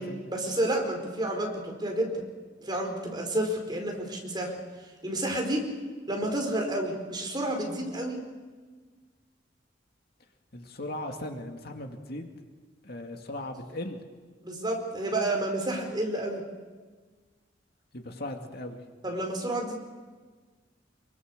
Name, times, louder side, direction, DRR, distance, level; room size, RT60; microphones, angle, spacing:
voice 1, 0.3-2.2 2.6-4.5 5.0-5.6 6.1-8.2 14.4-16.4 19.0-19.8, right 1 dB, 25° right, 1 dB, 4.9 m, -30 dB
voice 2, 10.5-12.3 12.8-14.0 17.9-18.8, left 1 dB, 55° left, 3 dB, 2.4 m, -38 dB
26.0 x 23.5 x 6.8 m, 1.4 s
head